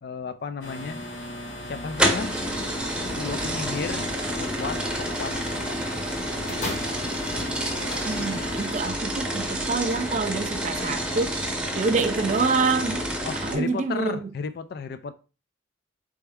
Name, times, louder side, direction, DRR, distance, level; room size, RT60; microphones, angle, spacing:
voice 1, 0.0-1.0 1.7-2.4 3.2-4.1 4.4-5.4 13.3-15.1, left 5 dB, 55° left, 0.4 m, -33 dB
sound 1, 0.6-8.8, left 1 dB, 80° left, 1.3 m, -37 dB
sound 2, 2.0-13.6, equal, 5° right, 0.7 m, -29 dB
sound 3, 6.5-8.7 9.5-9.6, left 2 dB, 35° left, 0.9 m, -37 dB
voice 2, 8.0-11.4 11.7-13.0 13.4-14.3, right 4 dB, 40° right, 0.4 m, -26 dB
4.3 x 3.5 x 3.4 m
head